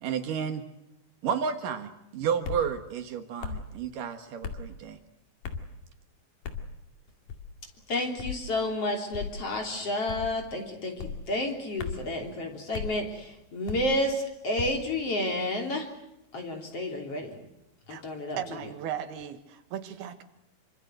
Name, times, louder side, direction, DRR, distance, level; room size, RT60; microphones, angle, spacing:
voice 1, 0.0-0.7 1.2-5.0, right 7 dB, 65° right, 8 dB, 2.8 m, -31 dB
sound 1, 2.4-2.7 3.4-3.7 4.4-4.7 5.4-5.7 6.4-6.7 7.3-7.6 8.2-8.5 9.1-9.4 10.1-10.4 11.0-11.2 11.8-12.1 12.7-13.0 13.7-14.0 14.6-14.8, left 5 dB, 60° left, 3.7 m, -36 dB
voice 2, 7.9-15.9 16.3-17.4 17.9-18.6, left 1 dB, 40° left, 3 dB, 4.0 m, -31 dB
voice 3, 18.4-20.2, right 9 dB, 85° right, 8 dB, 3.7 m, -36 dB
27.5 x 25.0 x 7.9 m, 0.86 s
omnidirectional pair, 4.4 m